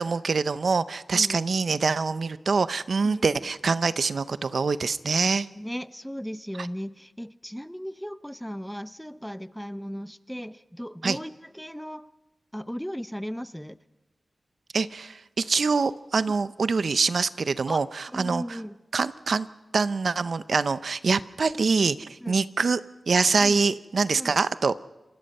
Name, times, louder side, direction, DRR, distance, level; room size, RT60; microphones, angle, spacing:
voice 1, 0.0-5.5 11.0-11.2 14.7-18.4 18.9-19.5 19.7-22.8 23.1-24.7, right 4 dB, 70° right, 14 dB, 0.6 m, -25 dB
voice 2, 3.0-3.3 5.5-12.1 12.5-13.8 17.7-18.8 22.2-22.4 23.4-23.6 24.1-24.4, equal, ahead, 13 dB, 0.7 m, -36 dB
27.0 x 20.0 x 5.4 m, 1.1 s
wide cardioid pair, 70°, 0 cm